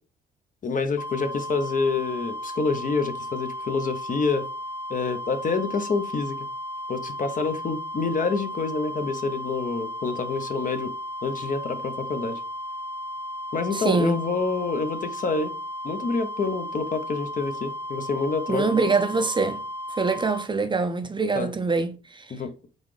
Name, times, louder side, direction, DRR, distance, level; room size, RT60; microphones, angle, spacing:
voice 1, 0.6-4.4 4.9-6.4 6.9-10.9 11.2-12.4 13.5-15.5 15.8-18.7 21.3-21.5 22.3-22.5, left 4 dB, 40° left, 0.7 m, -27 dB
sound 1, 1.0-20.5, equal, 75° left, 0.9 m, -35 dB
voice 2, 13.7-14.2 18.5-19.6 19.9-22.4, right 4 dB, 25° right, 0.5 m, -24 dB
4.0 x 3.6 x 3.2 m
cardioid pair, 90°, 20 cm